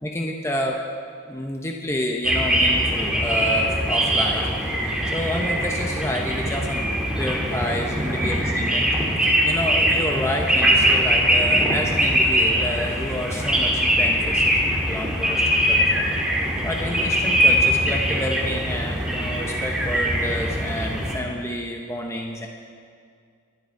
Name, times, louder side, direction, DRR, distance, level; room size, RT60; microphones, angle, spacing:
voice 1, 0.0-0.8 1.3-4.5 5.0-8.9 9.2-16.0 16.6-22.5, equal, 15° left, 1 dB, 0.9 m, -29 dB
sound 1, 2.2-21.2, equal, 5° right, 2.0 m, -22 dB
23.0 x 11.0 x 4.6 m, 2.2 s
head